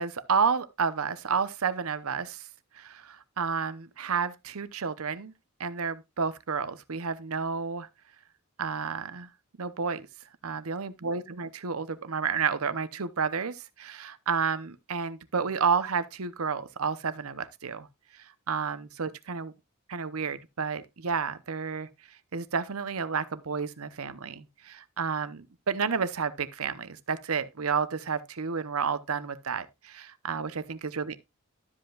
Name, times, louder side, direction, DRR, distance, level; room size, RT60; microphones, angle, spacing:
voice 1, 0.0-2.4 2.7-5.3 5.6-7.9 8.6-9.3 9.6-10.1 10.4-17.9 18.5-19.5 19.9-21.9 22.3-31.2, right 5 dB, 80° right, 0.8 m, -31 dB
12.5 x 7.8 x 2.4 m
head